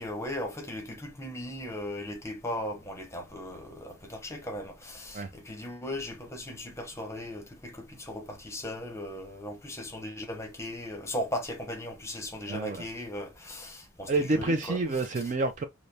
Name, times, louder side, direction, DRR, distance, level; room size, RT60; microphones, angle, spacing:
voice 1, 0.0-14.8, left 1 dB, 10° left, 0.8 m, -37 dB
voice 2, 12.5-12.9 14.1-15.6, right 2 dB, 35° right, 0.3 m, -28 dB
4.9 x 2.0 x 2.7 m
head